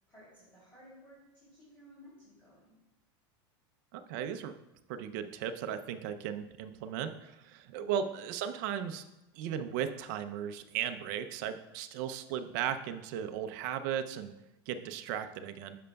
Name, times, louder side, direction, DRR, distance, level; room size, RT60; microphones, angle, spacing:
voice 1, 0.0-2.8, equal, 15° left, -10 dB, 2.9 m, -57 dB
voice 2, 3.9-4.5 4.9-9.0 9.4-14.3 14.7-15.8, right 9 dB, 50° right, 9 dB, 0.5 m, -36 dB
10.0 x 6.7 x 2.3 m, 0.95 s
supercardioid pair, 170°, 13 cm